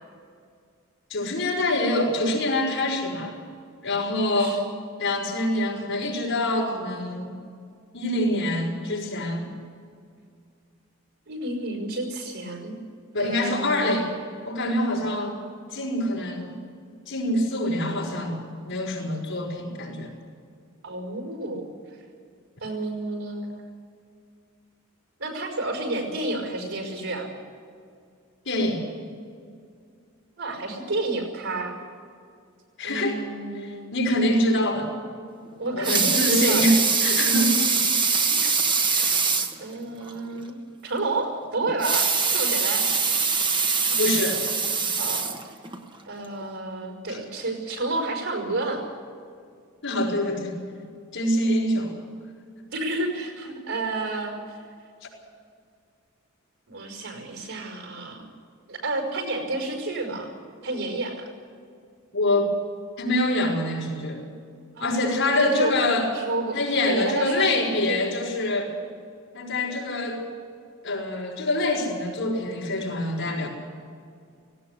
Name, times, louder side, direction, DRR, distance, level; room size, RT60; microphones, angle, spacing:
voice 1, 1.1-3.3 3.8-4.6 5.0-7.3 7.9-9.5 13.1-14.1 14.5-15.4 15.7-16.6 17.1-18.4 18.6-20.1 28.5-28.8 32.8-33.2 33.6-34.9 35.7-37.6 44.0-44.4 47.1-47.2 49.8-50.5 51.1-52.0 62.1-62.5 63.0-64.2 64.8-66.1 66.5-68.7 69.3-70.2 70.8-73.5, left 1 dB, 60° left, -2 dB, 5.6 m, -25 dB
voice 2, 11.3-12.8 13.2-14.0 20.8-21.7 22.6-23.6 25.2-27.3 30.4-31.8 32.8-33.9 35.6-36.7 37.9-38.6 38.9-39.3 39.6-42.9 45.0-45.5 46.1-48.8 52.7-54.4 56.7-58.3 58.7-60.3 60.6-61.3 64.8-64.9 65.2-68.2, right 2 dB, 90° right, 3 dB, 5.5 m, -30 dB
Water tap faucet / Sink (filling or washing) / Liquid, 35.6-39.6 40.1-40.2 40.5-40.6 41.7-45.8 46.4-46.5, right 5 dB, 20° right, 1.2 m, -23 dB
18.0 x 17.5 x 8.3 m, 2.2 s
head